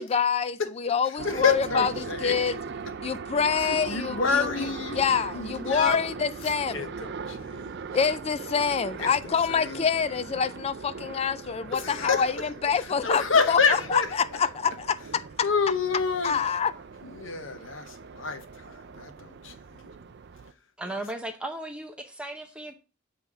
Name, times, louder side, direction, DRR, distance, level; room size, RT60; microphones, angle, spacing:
voice 1, 0.0-1.9 2.2-2.6 3.0-4.7 4.9-7.1 7.9-15.5 16.2-16.7, left 6 dB, 30° left, 0.3 m, -26 dB
voice 2, 1.2-2.3 3.7-5.0 5.3-6.0 6.4-7.8 9.0-9.8 11.7-12.2 13.0-14.1 15.4-16.4 17.0-19.9, left 5 dB, 70° left, 0.9 m, -28 dB
sound 1, 1.2-20.5, right 5 dB, 55° right, 0.5 m, -40 dB
voice 3, 20.8-22.7, right 1 dB, 5° right, 0.7 m, -36 dB
7.5 x 3.4 x 5.9 m
head